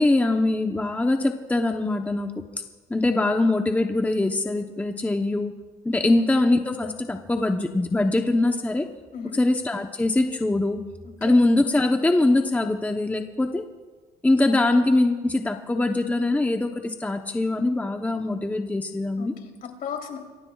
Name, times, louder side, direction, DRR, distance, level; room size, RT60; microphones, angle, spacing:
voice 1, 0.0-2.3 2.9-5.5 5.8-8.9 9.3-10.8 11.2-13.6 14.2-19.3, left 2 dB, 10° left, 5 dB, 0.9 m, -22 dB
voice 2, 19.2-20.2, left 7 dB, 60° left, 2 dB, 3.4 m, -35 dB
26.5 x 22.5 x 2.4 m, 1.3 s
cardioid pair, 110°, 17 cm